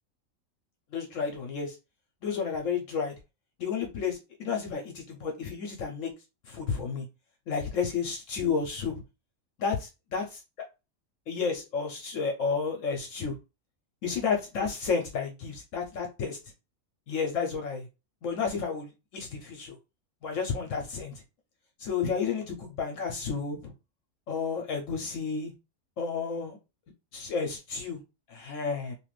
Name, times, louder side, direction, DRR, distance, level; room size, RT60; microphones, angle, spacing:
voice 1, 0.9-1.8 2.2-3.1 3.6-6.1 6.5-7.1 7.5-8.9 9.6-9.7 10.1-10.2 11.3-13.4 14.0-16.4 17.1-17.9 18.2-19.8 20.2-21.2 21.8-23.7 24.3-25.5 26.0-26.6 27.1-28.0 28.3-28.9, left 5 dB, 70° left, 0.9 m, -31 dB
2.7 x 2.4 x 3.1 m
omnidirectional pair, 1.5 m